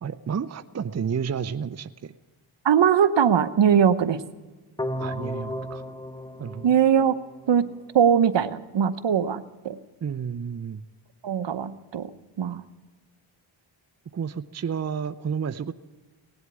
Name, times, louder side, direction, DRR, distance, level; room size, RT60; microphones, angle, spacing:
voice 1, 0.0-2.1 5.0-5.8 6.4-6.7 10.0-10.8 14.1-15.7, right 7 dB, 35° right, 11 dB, 0.6 m, -31 dB
voice 2, 2.6-4.2 6.6-7.1 7.5-7.6 7.9-9.8 11.2-12.1 12.4-12.6, right 8 dB, 60° right, 12 dB, 0.9 m, -21 dB
sound 1, 4.8-7.8, equal, 10° left, 0.8 m, -34 dB
19.0 x 8.0 x 9.5 m, 1.3 s
cardioid pair, 55°, 49 cm